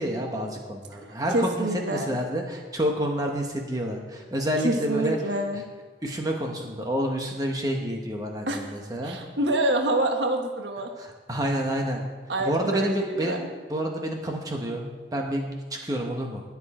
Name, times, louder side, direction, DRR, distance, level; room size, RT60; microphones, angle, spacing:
voice 1, 0.0-5.2 6.0-9.2 11.0-12.0 12.4-13.4 13.7-14.8 15.1-16.4, equal, 20° right, 1 dB, 1.2 m, -29 dB
voice 2, 0.9-2.2 4.6-5.6 8.5-8.7 9.0-10.9 12.3-13.5, right 1 dB, 85° right, 3 dB, 1.3 m, -27 dB
20.5 x 7.2 x 4.3 m, 1.4 s
head